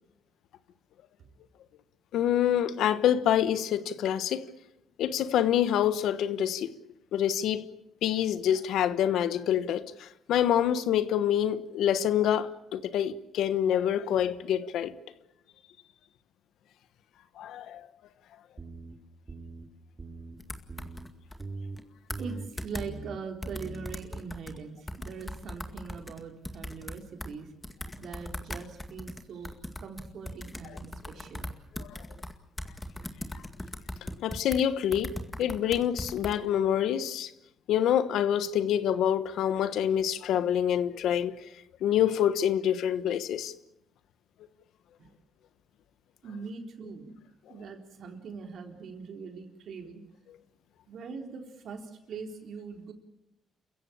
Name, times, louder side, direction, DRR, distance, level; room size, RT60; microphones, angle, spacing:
voice 1, 2.1-4.4 5.0-6.7 7.1-7.7 8.0-14.9 17.4-17.9 31.8-32.0 34.2-37.3 37.7-41.4 41.8-43.5, left 10 dB, 80° left, 1.2 m, -26 dB
sound 1, 18.6-18.9 19.3-19.6 20.0-20.3 20.7-21.1 21.4-21.8 22.1-22.5 22.8-23.2 23.5-23.9, right 3 dB, 30° right, 3.3 m, -41 dB
keyboard typing, 20.4-21.4 21.8-21.9 22.1-22.3 22.6-22.9 23.4-24.6 24.9-27.3 27.6-34.6 34.9-36.3, left 1 dB, 15° left, 2.1 m, -39 dB
voice 2, 22.2-27.5 28.0-31.6 45.0-45.1 46.2-47.2 47.5-50.0 50.9-52.9, right 5 dB, 65° right, 3.9 m, -42 dB
28.5 x 15.5 x 8.7 m
cardioid pair, 90°, 0 cm